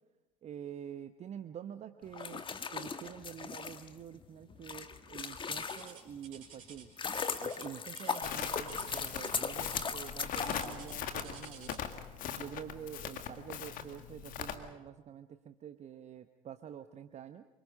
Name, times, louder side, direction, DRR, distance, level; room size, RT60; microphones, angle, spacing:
voice 1, 0.4-2.4 2.7-6.9 7.4-11.8 12.3-17.5, right 9 dB, 40° right, 9 dB, 1.0 m, -47 dB
sound 1, 2.1-6.2 6.7-11.4, left 5 dB, 30° left, 1.6 m, -38 dB
sound 2, 5.6-12.0 12.9-13.2 13.7-13.8 14.5-14.6, right 7 dB, 75° right, 4.0 m, -53 dB
Crackle, 8.2-14.5, left 9 dB, 50° left, 1.9 m, -41 dB
27.5 x 24.5 x 5.4 m, 1.1 s
figure-of-eight pair, 60°, 18 cm